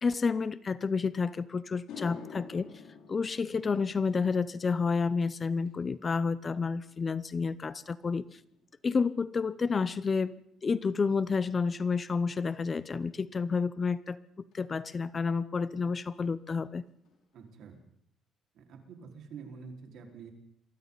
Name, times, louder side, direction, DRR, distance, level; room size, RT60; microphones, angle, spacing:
voice 1, 0.0-2.7 3.1-8.2 8.8-14.2 14.5-16.8, left 5 dB, 30° left, 16 dB, 0.8 m, -30 dB
sound 1, 1.7-10.2 10.5-10.9 14.5-14.6 16.3-16.4 16.6-16.8 17.0-17.6, left 6 dB, 80° left, 6.6 m, -52 dB
voice 2, 17.3-17.8 18.5-20.3, right 5 dB, 70° right, 2 dB, 4.8 m, -47 dB
29.0 x 23.5 x 4.1 m, 0.72 s
cardioid pair, 130°, 0 cm